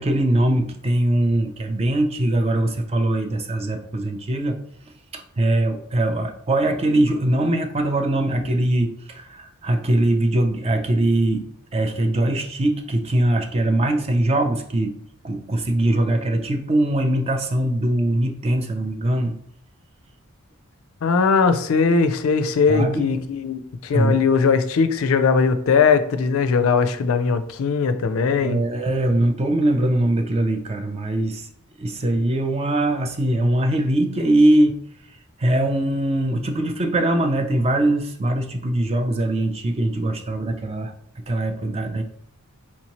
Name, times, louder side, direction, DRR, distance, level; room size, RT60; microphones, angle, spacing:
voice 1, 0.0-4.6 5.1-15.0 15.2-19.3 22.7-23.2 23.9-24.2 28.4-31.5 31.8-34.8 35.4-40.9 41.3-42.0, right 1 dB, 30° right, 6 dB, 0.4 m, -21 dB
voice 2, 21.0-28.6, left 5 dB, 70° left, 10 dB, 0.4 m, -19 dB
4.4 x 2.8 x 3.0 m, 0.65 s
head